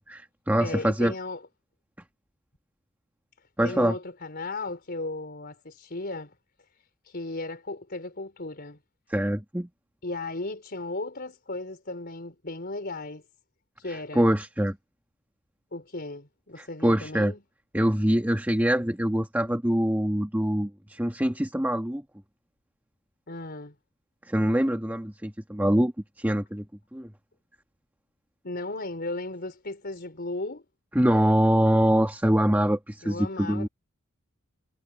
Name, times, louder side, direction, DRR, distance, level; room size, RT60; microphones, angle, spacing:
voice 1, 0.1-1.1 3.6-4.0 9.1-9.7 14.1-14.8 16.6-17.3 17.7-22.0 24.3-25.9 26.2-26.6 26.9-27.1 30.9-33.7, equal, 10° right, 1.6 m, -24 dB
voice 2, 0.6-1.4 3.6-6.3 7.0-8.8 10.0-13.2 13.8-14.3 15.7-17.4 23.3-23.7 28.4-30.6 33.0-33.7, left 2 dB, 50° left, 4.3 m, -35 dB
head